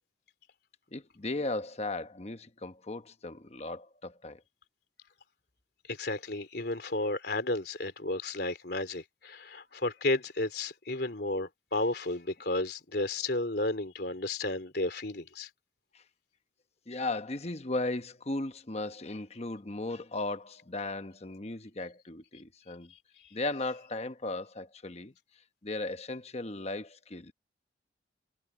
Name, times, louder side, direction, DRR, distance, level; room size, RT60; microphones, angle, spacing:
voice 1, 0.9-4.4 15.9-16.0 16.9-22.9 23.3-25.1 25.6-27.3, left 2 dB, 35° left, 1.0 m, -36 dB
voice 2, 5.9-15.5, left 2 dB, 60° left, 3.5 m, -32 dB
head